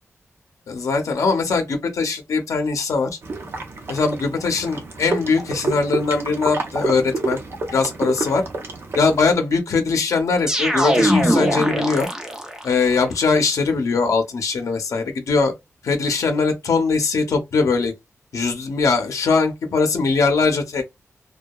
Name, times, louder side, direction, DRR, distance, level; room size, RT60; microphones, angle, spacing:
voice 1, 0.7-3.1 3.9-7.4 7.7-8.4 9.0-12.1 12.6-15.5 15.8-17.9 18.3-20.8, left 4 dB, 75° left, 0.6 m, -21 dB
sound 1, 3.2-9.3, right 3 dB, 50° right, 0.7 m, -29 dB
sound 2, 10.5-12.7, equal, 10° right, 0.5 m, -20 dB
2.7 x 2.2 x 2.2 m
wide cardioid pair, 145°, 6 cm